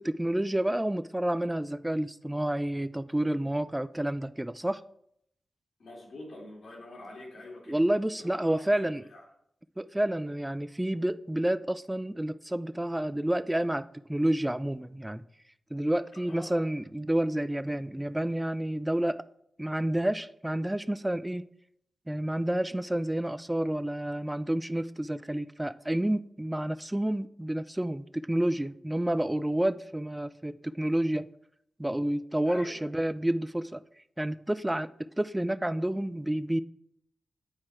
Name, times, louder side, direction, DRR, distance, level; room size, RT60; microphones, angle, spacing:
voice 1, 0.0-4.8 7.7-9.0 9.8-15.2 15.7-19.2 19.6-21.5 22.1-31.3 31.8-33.8 34.2-34.9 35.2-36.6, right 1 dB, 10° right, 0.3 m, -29 dB
voice 2, 5.8-7.8 8.3-9.2 16.1-16.6 32.4-32.8, left 1 dB, 75° left, 2.5 m, -45 dB
9.7 x 4.3 x 4.8 m
wide cardioid pair, 110°, 0 cm